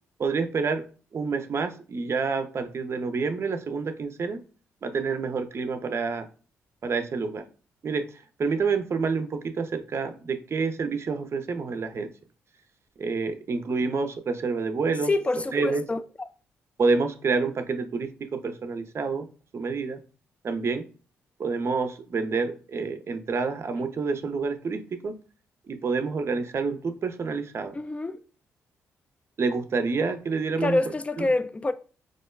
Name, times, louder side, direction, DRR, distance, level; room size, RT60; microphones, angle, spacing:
voice 1, 0.2-0.8 1.1-4.4 4.8-6.3 6.8-7.4 7.8-12.1 13.0-15.1 15.5-15.8 16.8-19.3 19.5-20.0 20.4-20.8 21.4-25.1 25.7-27.8 29.4-30.8 31.2-31.3, right 4 dB, 50° right, 0.5 m, -28 dB
voice 2, 15.1-16.3 27.7-28.2 30.6-31.7, left 2 dB, 20° left, 0.4 m, -26 dB
4.7 x 2.1 x 2.2 m
supercardioid pair, 50°, 6 cm